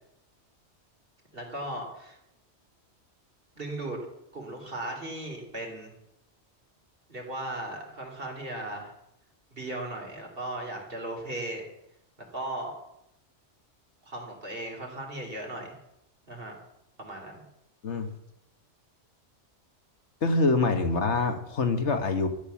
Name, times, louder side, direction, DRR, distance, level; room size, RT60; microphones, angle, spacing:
voice 1, 1.3-2.2 3.6-4.0 4.3-5.9 7.1-8.9 9.5-11.7 12.3-12.7 14.1-15.8 16.3-16.6 17.0-17.5, right 1 dB, 50° right, 1 dB, 3.9 m, -37 dB
voice 2, 20.2-22.3, left 3 dB, 75° left, 7 dB, 1.7 m, -25 dB
13.5 x 11.0 x 7.1 m, 0.80 s
omnidirectional pair, 1.2 m